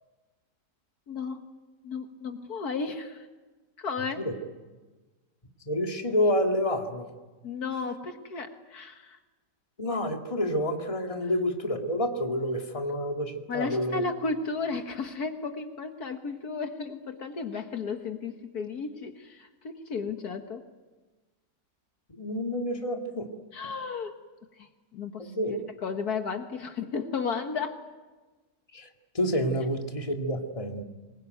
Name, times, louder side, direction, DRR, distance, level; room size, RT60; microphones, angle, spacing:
voice 1, 1.1-1.4 1.8-3.3 3.8-4.2 7.4-9.2 13.5-20.6 23.5-24.1 24.9-27.8, left 4 dB, 65° left, 6 dB, 1.9 m, -34 dB
voice 2, 5.7-7.1 9.8-14.0 22.1-23.3 25.2-25.6 28.7-28.9 29.1-30.8, equal, 20° left, 3 dB, 2.0 m, -28 dB
25.0 x 21.5 x 9.3 m, 1.3 s
omnidirectional pair, 1.8 m